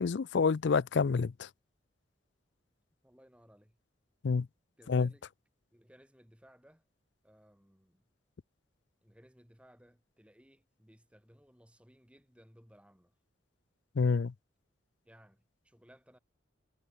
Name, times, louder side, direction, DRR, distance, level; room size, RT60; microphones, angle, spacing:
voice 1, 0.0-1.5 4.2-4.5 4.9-5.1 14.0-14.3, left 5 dB, 65° left, 0.4 m, -28 dB
voice 2, 3.0-3.8 4.8-5.3 5.7-6.8 7.2-8.0 9.0-13.1 15.1-16.2, equal, 5° right, 5.5 m, -61 dB
head